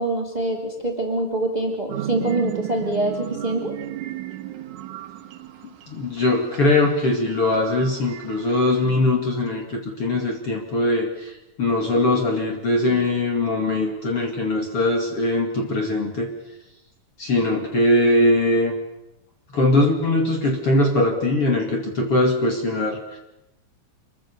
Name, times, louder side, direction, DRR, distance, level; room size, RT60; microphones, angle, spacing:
voice 1, 0.0-3.7, right 1 dB, 10° right, 2 dB, 2.5 m, -25 dB
sound 1, 1.9-8.8, right 13 dB, 65° right, 2.4 m, -35 dB
voice 2, 5.6-11.3 11.6-16.3 17.2-18.7 19.5-23.2, left 2 dB, 40° left, 2 dB, 2.8 m, -21 dB
26.5 x 22.5 x 6.9 m, 0.93 s
omnidirectional pair, 4.4 m